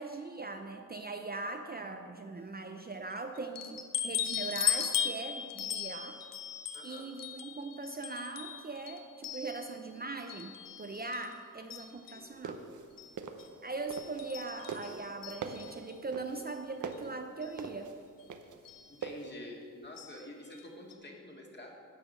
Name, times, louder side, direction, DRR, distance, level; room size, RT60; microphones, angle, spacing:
voice 1, 0.0-6.2 6.8-12.6 13.6-17.9, right 3 dB, 30° right, 5 dB, 0.6 m, -40 dB
sound 1, 3.6-9.9 10.3-11.3 11.7-12.3 13.0-13.1 13.4-13.5 13.9-15.9 16.9-17.0 17.4-17.5 18.7-18.9 20.0-20.2 20.5-20.6 20.9-21.0, left 8 dB, 90° left, 0.7 m, -37 dB
voice 2, 6.7-7.1 11.9-12.5 18.9-21.7, left 1 dB, 35° left, -1 dB, 2.0 m, -48 dB
sound 2, 12.3-14.4 14.7-19.3, right 5 dB, 65° right, 0.8 m, -42 dB
10.0 x 5.0 x 7.4 m, 2.2 s
cardioid pair, 70°, 32 cm